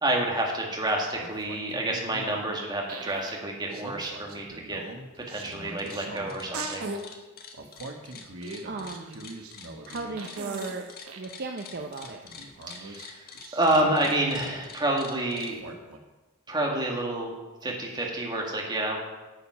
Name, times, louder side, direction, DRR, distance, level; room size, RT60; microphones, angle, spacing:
voice 1, 0.0-4.8 5.3-6.9 12.7-13.3 13.5-15.6 16.5-17.3 17.6-19.0, right 1 dB, 20° right, -1 dB, 1.9 m, -28 dB
sound 1, 0.9-2.5 2.9-3.4 3.7-7.0 7.5-11.3 11.7-14.8 15.3-16.0, right 2 dB, 90° right, 1.2 m, -41 dB
sound 2, 5.2-5.5 5.8-15.5, left 6 dB, 45° left, 1.3 m, -46 dB
voice 2, 8.6-9.3 9.9-10.9 11.1-12.2, right 3 dB, 45° right, 3 dB, 0.6 m, -36 dB
9.0 x 7.4 x 5.7 m, 1.1 s
head